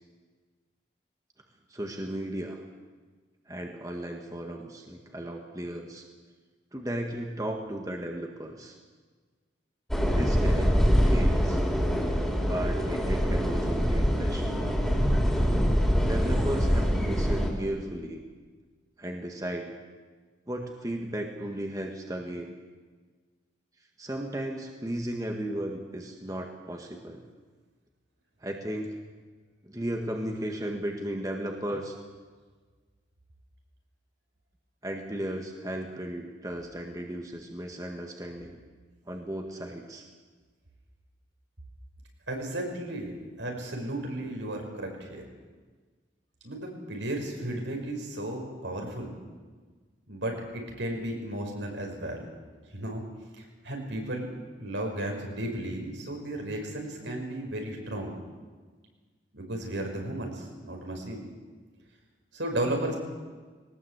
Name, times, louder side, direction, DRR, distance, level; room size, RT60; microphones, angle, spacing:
voice 1, 1.7-2.6 3.5-6.1 6.7-8.8 10.0-11.6 12.4-14.6 16.0-18.2 19.0-19.8 20.5-22.5 24.0-27.2 28.4-29.0 29.6-32.0 34.8-38.6 39.1-40.0, right 1 dB, 20° right, 2 dB, 1.7 m, -35 dB
sound 1, 9.9-17.5, equal, ahead, 3.4 m, -24 dB
voice 2, 42.3-43.1 43.4-45.2 46.4-49.1 50.1-52.3 52.7-53.0 53.4-54.3 54.6-58.2 59.3-61.3 62.3-62.9, right 1 dB, 80° right, 1 dB, 5.7 m, -34 dB
21.0 x 19.0 x 8.2 m, 1.4 s
head